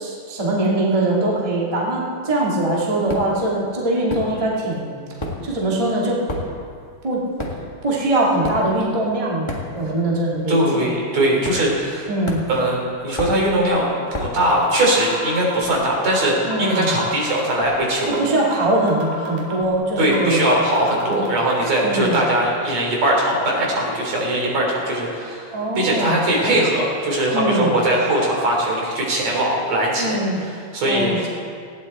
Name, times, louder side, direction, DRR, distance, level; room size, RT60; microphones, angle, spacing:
voice 1, 0.0-4.9 5.4-6.2 7.0-7.2 7.8-10.8 12.1-12.4 16.4-16.9 18.1-20.4 21.1-21.4 21.8-22.2 25.5-26.2 26.5-26.6 27.3-27.7 30.0-30.4 30.9-31.3, right 1 dB, 15° right, -4 dB, 1.8 m, -22 dB
sound 1, 3.1-3.5 4.1-4.7 5.0-10.1 10.4-10.7 11.4-12.0 12.3-14.5, left 1 dB, 15° left, 1.0 m, -31 dB
voice 2, 10.5-12.1 12.5-12.8 13.0-18.2 20.0-31.3, right 1 dB, 60° right, -2 dB, 4.4 m, -20 dB
sound 2, 14.1-14.2 14.5-15.7 16.1-16.3 16.5-17.7 18.1-18.2 18.5-19.7 20.1-20.2 20.5-21.5, right 3 dB, 85° right, 3.9 m, -31 dB
19.0 x 15.5 x 4.3 m, 2.2 s
omnidirectional pair, 3.5 m